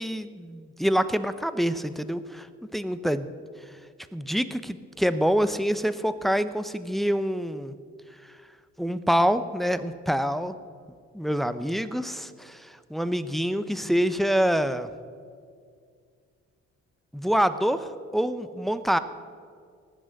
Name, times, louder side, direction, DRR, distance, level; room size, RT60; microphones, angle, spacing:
voice 1, 0.0-2.5 2.7-3.3 4.1-7.7 8.8-10.5 11.1-14.9 17.1-19.0, equal, ahead, 11 dB, 0.7 m, -26 dB
18.5 x 6.3 x 8.9 m, 2.1 s
cardioid pair, 90°, 30 cm